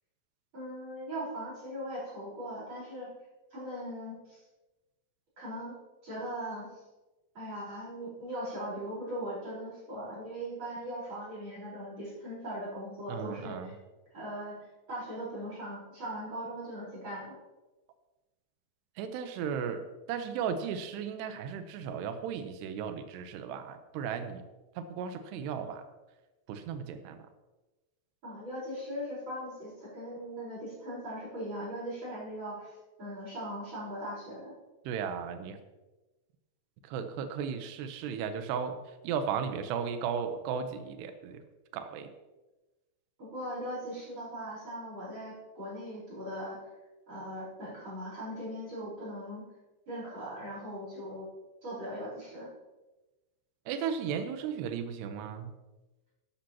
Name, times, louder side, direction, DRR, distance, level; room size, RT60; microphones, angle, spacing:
voice 1, 0.5-3.1 3.5-4.4 5.4-5.7 6.0-6.8 7.3-13.8 14.1-14.6 14.9-17.4 28.2-34.5 43.2-46.7 47.1-49.5 49.9-51.3 51.6-52.5, equal, 30° right, -7 dB, 4.9 m, -39 dB
voice 2, 13.1-13.8 19.0-24.4 24.8-25.9 26.5-27.2 34.9-35.6 36.8-41.4 41.7-42.1 53.7-55.5, right 7 dB, 80° right, 8 dB, 2.9 m, -35 dB
13.0 x 11.5 x 2.9 m, 1.1 s
omnidirectional pair, 5.0 m